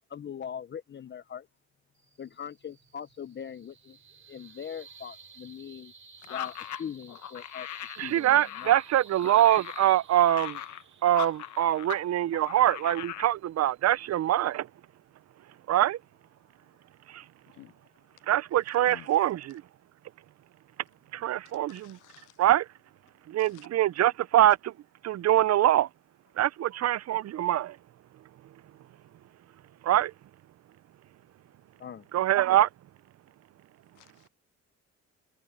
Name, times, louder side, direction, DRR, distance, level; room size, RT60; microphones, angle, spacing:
voice 1, 0.1-1.5 2.2-4.0 4.3-5.9 6.3-7.7 8.0-8.7 31.8-32.0, left 8 dB, 35° left, 0.6 m, -41 dB
sound 1, 2.0-14.6, right 5 dB, 40° right, 5.4 m, -55 dB
sound 2, 6.2-12.0 12.3-13.3, left 12 dB, 70° left, 1.3 m, -39 dB
voice 2, 8.0-10.6 11.0-14.7 15.7-16.0 17.1-17.2 18.3-19.6 21.1-22.0 22.4-22.7 23.3-24.7 25.0-25.9 26.4-27.8 29.8-30.1 32.1-32.7, right 13 dB, 60° right, 0.6 m, -24 dB
voice 3, 21.7-22.3 23.4-23.7 34.0-34.3, left 18 dB, 90° left, 0.5 m, -52 dB
cardioid pair, 90°, 30 cm